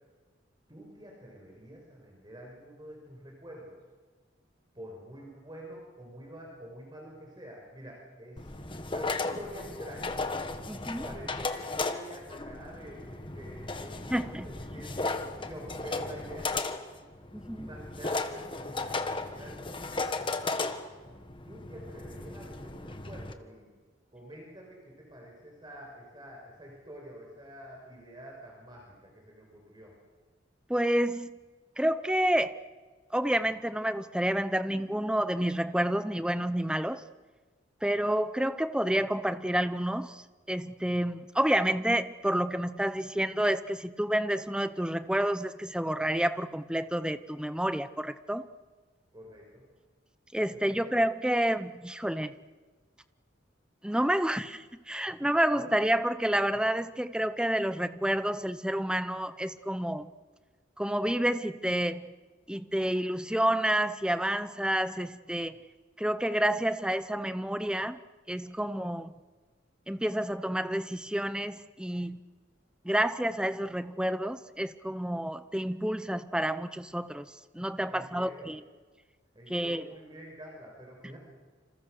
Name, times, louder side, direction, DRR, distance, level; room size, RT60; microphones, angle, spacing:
voice 1, 0.7-3.8 4.7-10.2 10.9-16.8 17.5-20.8 21.4-23.7 24.1-29.9 49.1-49.6 50.5-51.0 55.2-55.7 77.9-78.5 79.3-81.2, equal, 25° right, 5.8 m, -47 dB
sound 1, 8.4-23.3, left 3 dB, 25° left, 1.5 m, -35 dB
voice 2, 10.7-11.0 14.1-14.5 17.3-17.7 30.7-31.3 31.8-32.5 33.1-37.0 37.8-40.2 40.5-48.5 50.3-52.4 53.8-60.1 60.8-62.1 62.5-65.6 66.0-68.0 68.3-69.1 69.9-72.2 72.8-78.6 79.5-79.9, right 1 dB, 5° right, 0.8 m, -29 dB
28.5 x 27.0 x 6.6 m
head